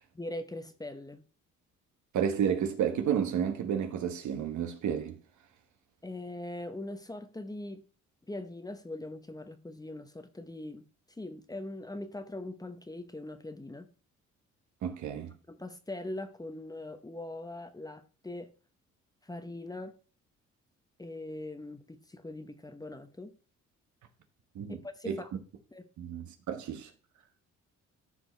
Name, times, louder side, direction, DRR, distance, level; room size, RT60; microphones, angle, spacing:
voice 1, 0.1-1.2 6.0-7.8 8.3-10.8 11.2-13.9 15.5-18.5 19.2-20.0 21.0-23.3 24.8-25.3 25.7-25.9, left 1 dB, 10° left, 0.9 m, -41 dB
voice 2, 2.1-5.2 14.8-15.3 24.5-24.8 25.0-25.2 26.0-26.9, right 8 dB, 75° right, 1.4 m, -31 dB
13.5 x 4.9 x 3.3 m
cardioid pair, 90°, 30 cm